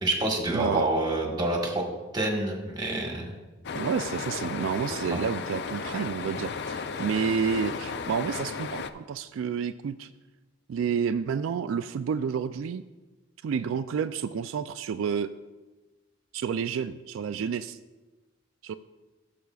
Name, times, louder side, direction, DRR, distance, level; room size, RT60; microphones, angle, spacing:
voice 1, 0.0-1.8 2.1-3.3 5.1-5.2, right 1 dB, 20° right, 0 dB, 1.4 m, -27 dB
voice 2, 0.5-0.8 3.7-10.1 10.7-12.8 13.4-15.3 16.3-17.8 18.6-18.7, right 6 dB, 90° right, 10 dB, 0.3 m, -30 dB
sound 1, 3.6-8.9, left 5 dB, 55° left, 0.4 m, -34 dB
15.0 x 6.8 x 2.4 m, 1.2 s
head